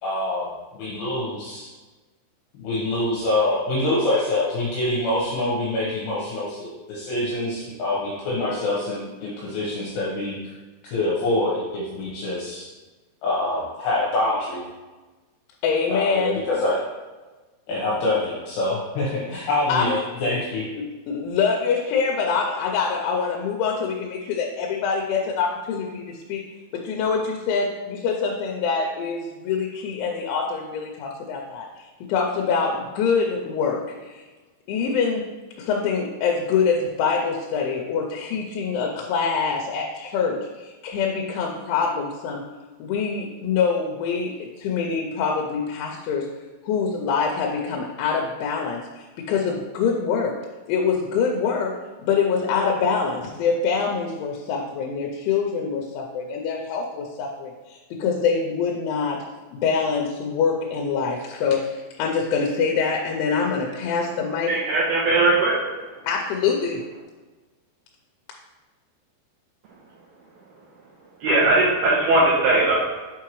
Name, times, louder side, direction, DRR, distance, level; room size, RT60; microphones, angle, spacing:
voice 1, 0.0-1.7 2.5-10.5 10.9-12.7 13.2-14.6 15.9-16.8 17.7-20.6, left 2 dB, 70° left, -6 dB, 2.9 m, -25 dB
voice 2, 15.6-16.4 19.7-19.9 20.8-26.4 26.7-34.2 34.7-35.2 35.6-42.5 42.8-46.3 46.6-50.4 50.7-51.7 52.0-59.2 59.5-64.6 66.0-66.8, left 5 dB, 90° left, 1 dB, 3.0 m, -25 dB
voice 3, 64.5-65.6 71.2-72.7, right 2 dB, 75° right, -6 dB, 2.5 m, -19 dB
7.0 x 4.6 x 3.0 m, 1.3 s
omnidirectional pair, 5.3 m